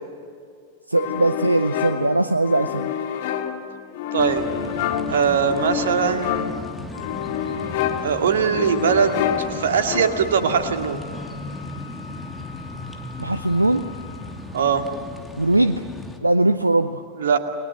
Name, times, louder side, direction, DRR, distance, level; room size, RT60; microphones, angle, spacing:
voice 1, 0.9-2.9 13.2-13.8 15.4-15.8 16.2-17.0, right 2 dB, 85° right, 11 dB, 0.7 m, -20 dB
sound 1, 1.0-10.5, left 9 dB, 50° left, 1.9 m, -28 dB
voice 2, 4.1-4.4 5.1-6.4 8.0-9.2 9.5-11.0 14.5-14.8 17.2-17.4, right 6 dB, 60° right, 6 dB, 2.2 m, -20 dB
sound 2, 4.2-16.2, left 2 dB, 5° left, 2.8 m, -36 dB
Wind instrument woodwind instrument, 9.4-14.6, left 4 dB, 85° left, 6.6 m, -42 dB
29.5 x 21.5 x 7.6 m, 2.2 s
figure-of-eight pair, 90°, 0 cm